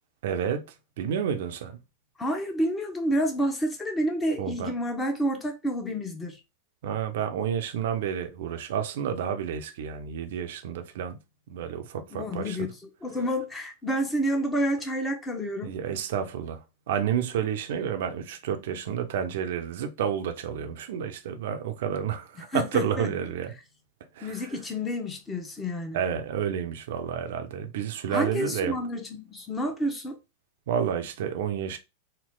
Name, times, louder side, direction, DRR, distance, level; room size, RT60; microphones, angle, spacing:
voice 1, 0.2-0.7 1.0-1.8 4.4-4.7 6.8-11.2 11.5-12.7 15.6-23.5 24.2-24.4 25.9-28.8 30.7-31.8, right 8 dB, 55° right, 0.6 m, -30 dB
voice 2, 2.2-6.4 12.1-12.7 13.0-15.8 22.5-23.1 24.2-26.0 28.1-30.2, equal, 15° left, 0.9 m, -29 dB
4.4 x 2.0 x 3.8 m
figure-of-eight pair, 90°, 0 cm